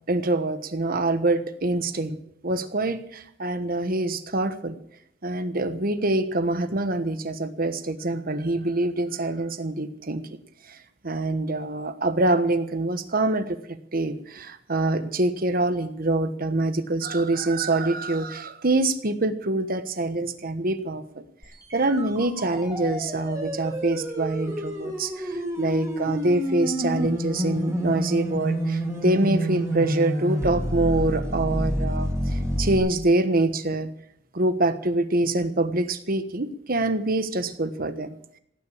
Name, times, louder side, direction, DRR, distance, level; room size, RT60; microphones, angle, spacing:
voice 1, 0.1-2.2 2.4-4.8 5.2-10.3 10.6-21.2 21.7-33.9 34.3-38.1, right 2 dB, 50° right, 10 dB, 1.3 m, -25 dB
sound 1, 21.4-32.8, equal, 15° right, 3.1 m, -29 dB
17.0 x 9.9 x 7.2 m, 0.71 s
head